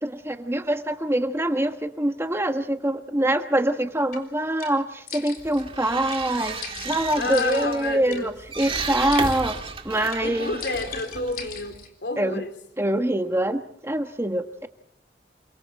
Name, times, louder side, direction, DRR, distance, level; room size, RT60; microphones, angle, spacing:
voice 1, 0.0-9.6 9.8-10.6 12.2-12.4 12.8-14.7, right 1 dB, 15° right, 7 dB, 1.4 m, -25 dB
sound 1, 4.1-4.2 4.6-4.7 5.1-5.6 6.1-6.2 6.6-8.2 8.6-8.7 9.1-9.6 10.1-10.2 10.6-11.9, left 6 dB, 55° left, 3.7 m, -39 dB
sound 2, 5.4-11.9, right 4 dB, 30° right, 1.8 m, -34 dB
voice 2, 7.2-8.3 10.2-12.5, left 2 dB, 80° left, 6 dB, 3.4 m, -30 dB
28.5 x 24.5 x 4.4 m, 0.69 s
head